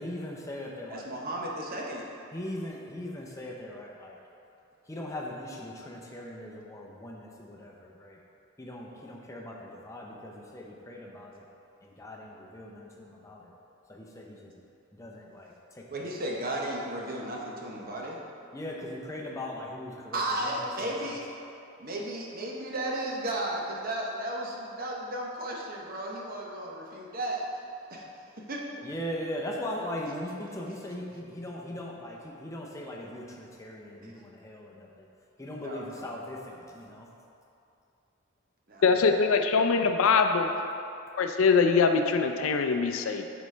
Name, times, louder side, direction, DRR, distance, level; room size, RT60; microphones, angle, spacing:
voice 1, 0.0-1.1 2.3-4.2 4.9-8.2 8.6-11.4 11.8-13.4 13.9-14.5 15.0-15.5 18.5-20.5 28.8-35.1 35.4-37.1, left 1 dB, 15° left, -2 dB, 0.6 m, -39 dB
voice 2, 0.9-2.0 15.9-18.2 20.1-21.2 21.8-27.6 27.9-28.6 34.0-34.2 35.6-36.3 38.7-39.0, right 1 dB, 45° right, -2 dB, 0.8 m, -34 dB
voice 3, 38.8-40.5 41.2-43.2, left 5 dB, 80° left, 6 dB, 0.4 m, -23 dB
8.2 x 4.0 x 3.2 m, 2.7 s
head